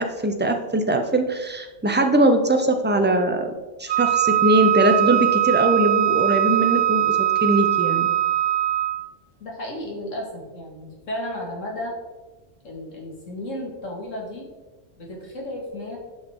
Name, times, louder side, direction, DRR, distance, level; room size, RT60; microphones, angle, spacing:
voice 1, 0.0-3.5 3.8-8.1, right 1 dB, 15° right, 5 dB, 0.4 m, -21 dB
Wind instrument woodwind instrument, 3.9-9.1, right 14 dB, 75° right, 0.4 m, -21 dB
voice 2, 9.4-11.9 12.6-14.4 15.0-16.0, left 1 dB, 90° left, -1 dB, 2.2 m, -33 dB
8.7 x 6.0 x 3.6 m, 1.2 s
omnidirectional pair, 1.3 m